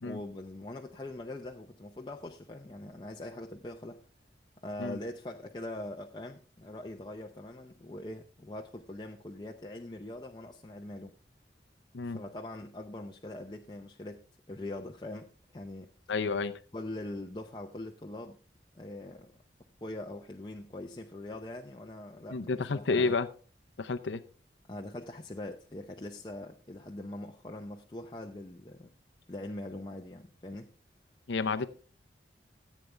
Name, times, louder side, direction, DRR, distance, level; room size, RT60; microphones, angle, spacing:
voice 1, 0.0-4.0 4.6-11.1 12.0-15.9 16.7-18.4 18.7-19.3 19.8-23.1 24.7-28.9 29.3-30.7, left 1 dB, 25° left, 0.6 m, -42 dB
voice 2, 16.1-16.5 22.3-23.3 23.8-24.2 31.3-31.7, left 4 dB, 80° left, 0.6 m, -30 dB
14.5 x 8.4 x 3.3 m
head